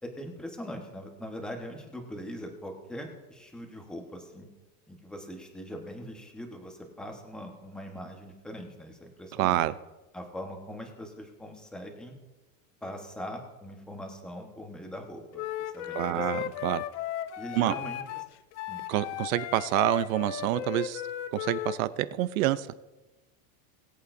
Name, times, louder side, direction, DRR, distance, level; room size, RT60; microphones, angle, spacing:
voice 1, 0.0-4.5 4.9-9.6 10.1-12.1 12.8-15.4 15.7-16.5 17.4-18.2 18.7-18.8, equal, ahead, 2 dB, 1.2 m, -41 dB
voice 2, 9.4-9.7 15.9-16.8 17.5-17.7 18.9-21.0 21.3-22.7, right 14 dB, 70° right, 15 dB, 0.7 m, -27 dB
Wind instrument woodwind instrument, 15.3-21.8, left 12 dB, 60° left, 0.7 m, -36 dB
21.5 x 8.4 x 2.6 m, 1.1 s
supercardioid pair, 165°, 42 cm